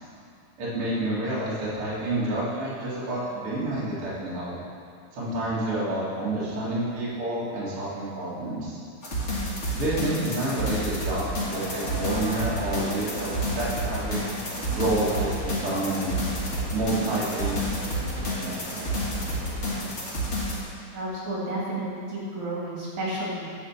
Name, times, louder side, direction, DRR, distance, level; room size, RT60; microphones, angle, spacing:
voice 1, 0.6-4.6 5.1-8.8 9.7-14.2 14.7-16.1 16.7-17.6 18.1-18.6, right 1 dB, 50° right, -8 dB, 2.7 m, -29 dB
sound 1, 9.0-20.6, equal, 30° left, 1.6 m, -30 dB
sound 2, 11.5-19.8, right 1 dB, 10° right, 1.1 m, -37 dB
voice 2, 20.9-23.5, right 1 dB, 65° right, -6 dB, 3.5 m, -31 dB
10.5 x 5.2 x 7.1 m, 2.3 s
omnidirectional pair, 3.6 m